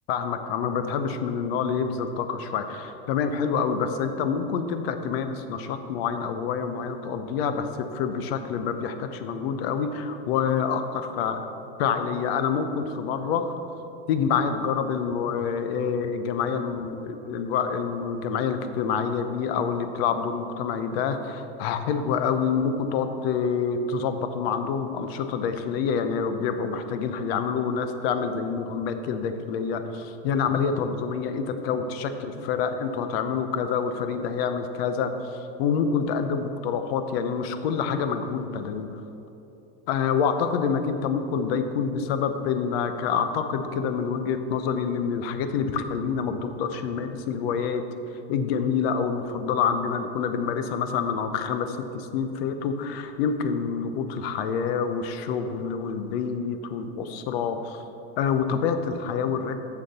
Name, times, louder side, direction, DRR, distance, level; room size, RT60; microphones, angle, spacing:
voice 1, 0.1-10.8 11.2-13.5 14.1-39.0 39.9-47.8 48.3-57.8 58.2-59.6, left 6 dB, 70° left, 9 dB, 0.7 m, -27 dB
7.3 x 6.5 x 4.2 m, 2.9 s
supercardioid pair, 140°, 32 cm